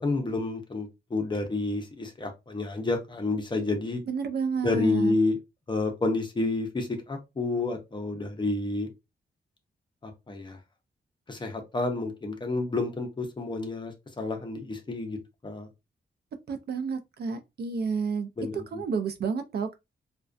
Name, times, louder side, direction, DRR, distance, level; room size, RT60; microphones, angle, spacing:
voice 1, 0.0-4.0 4.6-5.4 5.7-8.9 10.0-10.6 11.3-15.7 18.4-18.8, left 3 dB, 25° left, 0.6 m, -29 dB
voice 2, 4.1-5.1 16.5-19.7, right 5 dB, 60° right, 0.4 m, -30 dB
2.3 x 2.2 x 2.4 m
wide cardioid pair, 145°, 18 cm